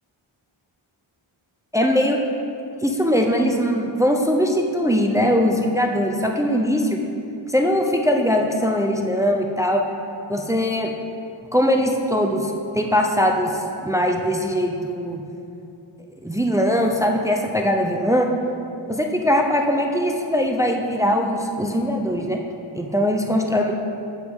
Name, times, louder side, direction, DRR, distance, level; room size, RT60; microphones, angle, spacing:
voice 1, 1.7-2.2 2.8-7.0 7.5-9.8 10.3-10.9 11.5-15.2 16.2-18.3 18.9-22.4 22.7-23.7, equal, 5° right, 2 dB, 0.5 m, -21 dB
10.0 x 8.0 x 3.6 m, 2.7 s
wide cardioid pair, 105°, 50 cm